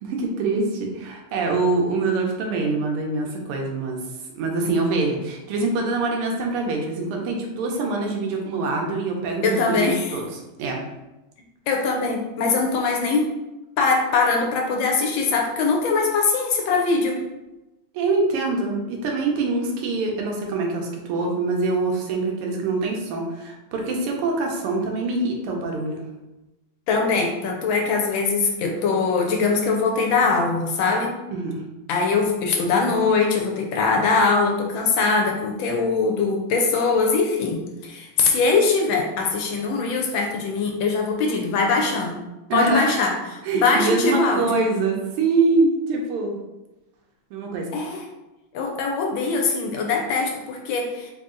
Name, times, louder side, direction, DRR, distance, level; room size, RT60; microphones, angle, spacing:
voice 1, 0.0-4.0 4.4-10.8 17.9-26.0 31.3-31.6 42.5-43.0 43.4-46.4 47.3-47.7, right 3 dB, 85° right, 1 dB, 1.7 m, -24 dB
voice 2, 9.4-10.1 11.7-13.3 13.8-17.2 26.9-31.2 31.9-42.1 42.5-43.1 43.5-44.4 47.7-48.0 48.5-51.1, left 4 dB, 75° left, 2 dB, 1.3 m, -22 dB
4.0 x 2.7 x 3.7 m, 1.0 s
omnidirectional pair, 2.4 m